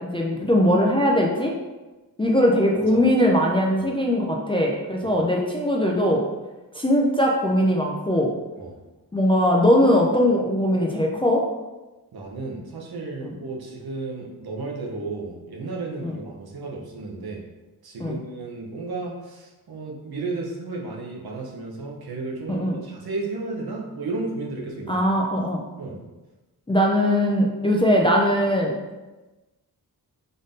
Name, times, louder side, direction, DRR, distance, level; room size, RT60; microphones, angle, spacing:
voice 1, 0.0-1.5 2.2-6.2 6.7-8.3 9.1-11.4 13.2-13.3 16.0-16.1 18.0-18.2 22.5-22.8 24.9-25.6 26.7-28.7, equal, 15° left, -1 dB, 0.3 m, -20 dB
voice 2, 12.1-17.5 17.8-25.1 25.8-26.0, right 3 dB, 70° right, -1 dB, 0.8 m, -33 dB
3.9 x 2.6 x 3.5 m, 1.1 s
wide cardioid pair, 145°, 39 cm